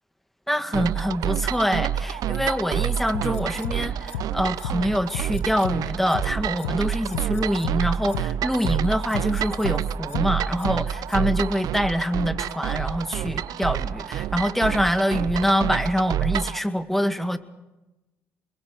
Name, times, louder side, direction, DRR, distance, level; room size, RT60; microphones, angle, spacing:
voice 1, 0.5-17.4, equal, 5° left, 10 dB, 2.0 m, -25 dB
sound 1, 0.7-16.6, right 10 dB, 65° right, 0.7 m, -28 dB
sound 2, 3.1-3.7 4.1-4.2 4.6-4.7 5.1-5.7 6.1-6.2 6.6-6.7 7.1-7.7 8.1-8.2 8.6-8.7 9.1-9.7 10.1-10.2 10.6-10.7 11.1-11.2, left 10 dB, 90° left, 1.2 m, -32 dB
26.0 x 22.0 x 6.8 m, 1.0 s
hypercardioid pair, 55°, 7 cm